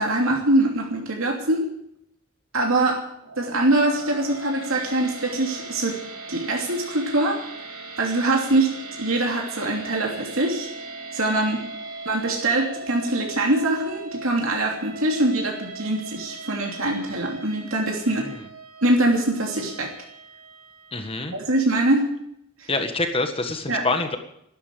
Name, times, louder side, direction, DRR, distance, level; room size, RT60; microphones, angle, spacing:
voice 1, 0.0-1.6 2.5-3.0 3.4-6.0 6.3-7.4 8.0-10.7 11.1-11.6 12.0-18.3 18.8-19.9 21.3-22.1 22.6-22.7 23.7-23.8, right 2 dB, 70° right, 1 dB, 2.9 m, -23 dB
sound 1, 3.2-21.5, right 3 dB, 90° right, 3.5 m, -39 dB
voice 2, 18.1-18.4 20.9-21.3 22.7-24.2, left 2 dB, 25° left, 7 dB, 1.6 m, -26 dB
12.5 x 12.5 x 9.2 m, 0.76 s
head